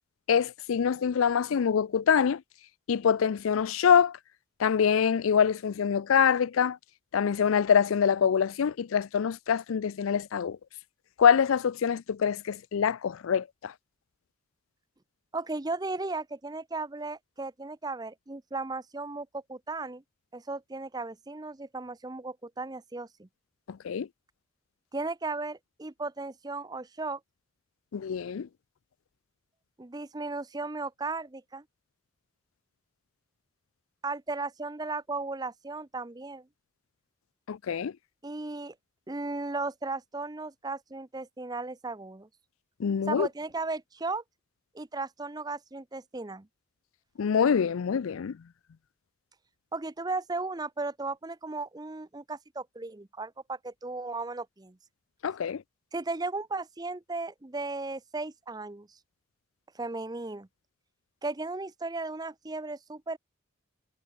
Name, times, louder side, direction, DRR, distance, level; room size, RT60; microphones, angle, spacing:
voice 1, 0.3-2.4 2.9-4.2 4.6-6.8 7.1-10.6 11.2-13.7 23.7-24.1 27.9-28.5 37.5-37.9 42.8-43.3 47.2-48.4 55.2-55.6, left 7 dB, 90° left, 0.4 m, -25 dB
voice 2, 15.3-20.0 20.3-23.3 24.9-27.2 29.8-31.6 34.0-36.5 38.2-38.7 39.1-42.3 43.1-44.2 44.7-46.5 49.7-54.8 55.9-58.9 59.7-60.5 61.2-63.2, right 3 dB, 20° right, 0.6 m, -35 dB
head